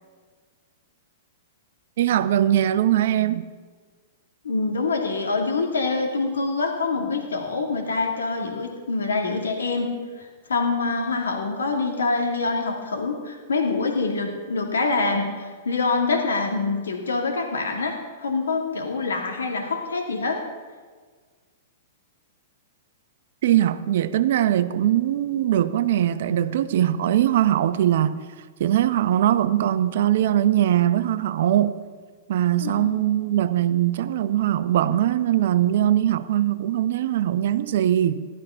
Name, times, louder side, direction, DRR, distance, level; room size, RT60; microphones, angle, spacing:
voice 1, 2.0-3.4 23.4-28.2 28.6-31.8 32.3-38.3, right 11 dB, 65° right, 0.9 m, -21 dB
voice 2, 4.4-9.9 10.2-20.4 32.6-33.0, left 3 dB, 80° left, 2.3 m, -25 dB
16.0 x 12.5 x 5.7 m
hypercardioid pair, 115°, 0 cm